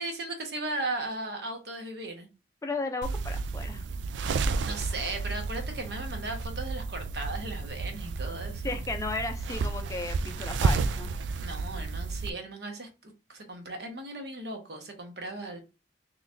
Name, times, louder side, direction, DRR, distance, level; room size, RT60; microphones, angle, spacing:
voice 1, 0.0-2.3 4.3-8.8 11.4-15.6, right 2 dB, 60° right, 1.0 m, -37 dB
voice 2, 2.6-3.9 8.6-11.1, left 3 dB, 15° left, 0.4 m, -34 dB
sound 1, 3.0-12.3, right 4 dB, 80° right, 0.3 m, -31 dB
3.8 x 3.1 x 2.6 m
head